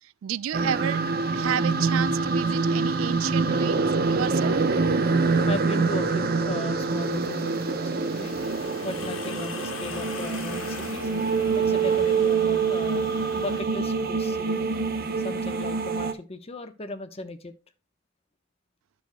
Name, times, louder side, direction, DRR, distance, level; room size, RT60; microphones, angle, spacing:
voice 1, 0.2-1.0 1.3-4.6, right 9 dB, 90° right, 0.3 m, -31 dB
sound 1, 0.5-16.1, right 4 dB, 50° right, 0.8 m, -25 dB
voice 2, 5.5-8.3 8.8-11.1 11.5-14.6 15.1-17.5, left 2 dB, 30° left, 1.0 m, -37 dB
sound 2, 6.8-13.6, left 5 dB, 90° left, 1.3 m, -41 dB
10.0 x 6.5 x 2.2 m
head